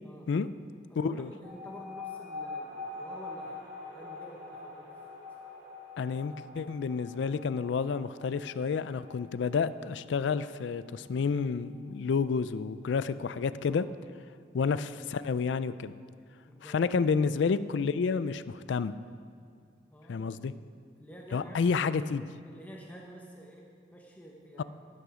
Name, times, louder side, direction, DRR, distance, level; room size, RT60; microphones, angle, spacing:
voice 1, 0.0-0.5 0.9-4.9 13.7-13.9 14.2-14.5 16.5-17.1 19.9-20.5 21.0-22.0 22.4-24.6, equal, 10° left, -1 dB, 1.0 m, -49 dB
voice 2, 1.0-1.3 6.0-13.8 14.5-15.9 16.7-18.9 20.1-20.5 21.3-22.2 24.6-24.7, left 5 dB, 75° left, 15 dB, 0.4 m, -30 dB
sound 1, 1.4-12.4, left 3 dB, 25° right, 2.6 m, -45 dB
12.5 x 11.0 x 5.0 m, 2.2 s
head